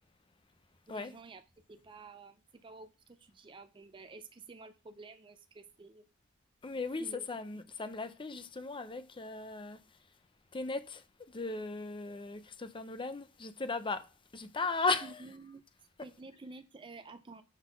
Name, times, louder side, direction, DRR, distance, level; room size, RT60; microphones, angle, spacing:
voice 1, 0.9-1.4 1.7-6.0 7.0-7.3 7.5-7.7 15.0-15.6 16.0-17.4, right 3 dB, 25° right, 0.5 m, -51 dB
voice 2, 6.6-9.8 10.5-14.1 14.3-15.2, left 3 dB, 25° left, 0.6 m, -37 dB
5.6 x 4.0 x 5.8 m
head